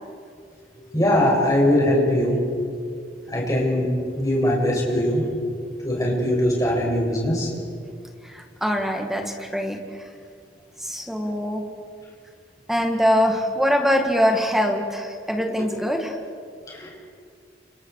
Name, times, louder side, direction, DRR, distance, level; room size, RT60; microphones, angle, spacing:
voice 1, 0.9-2.4 3.3-5.3 5.8-7.5 16.7-16.9, left 1 dB, 20° left, -4 dB, 7.4 m, -21 dB
voice 2, 8.2-10.1 10.8-11.6 12.7-16.2, equal, ahead, 3 dB, 2.0 m, -23 dB
30.0 x 28.0 x 4.9 m, 2.2 s
head